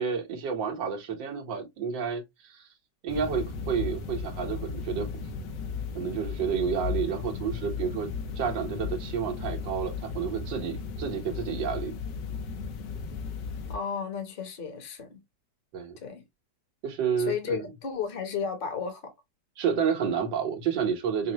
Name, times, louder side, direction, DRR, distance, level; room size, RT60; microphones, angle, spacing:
voice 1, 0.0-2.6 3.0-5.1 6.0-8.1 8.4-12.0 15.7-16.0 16.8-17.7 19.6-21.3, right 7 dB, 85° right, 1.8 m, -30 dB
sound 1, 3.1-13.8, left 5 dB, 75° left, 1.4 m, -35 dB
voice 2, 13.7-15.2 16.0-16.2 17.2-19.0, left 6 dB, 35° left, 1.1 m, -33 dB
5.9 x 2.1 x 2.9 m
omnidirectional pair, 1.9 m